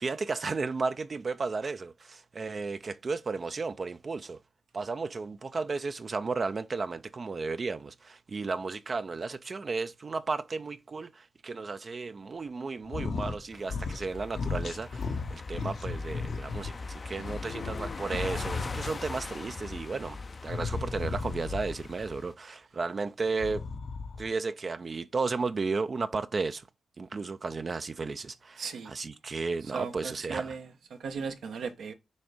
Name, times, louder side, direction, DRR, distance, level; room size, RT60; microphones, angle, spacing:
voice 1, 0.0-4.4 4.7-23.6 24.2-26.6 27.0-30.6, right 4 dB, 50° right, 0.4 m, -34 dB
sound 1, 12.8-13.4 13.6-14.1 14.3-16.7 17.1-19.1 20.4-21.8 23.3-24.3, left 4 dB, 80° left, 0.9 m, -35 dB
sound 2, 13.5-22.3, left 4 dB, 45° left, 0.5 m, -41 dB
voice 2, 28.6-28.9 29.7-30.7 31.0-31.9, right 5 dB, 85° right, 1.0 m, -36 dB
6.3 x 3.4 x 4.9 m
cardioid pair, 60°, 0 cm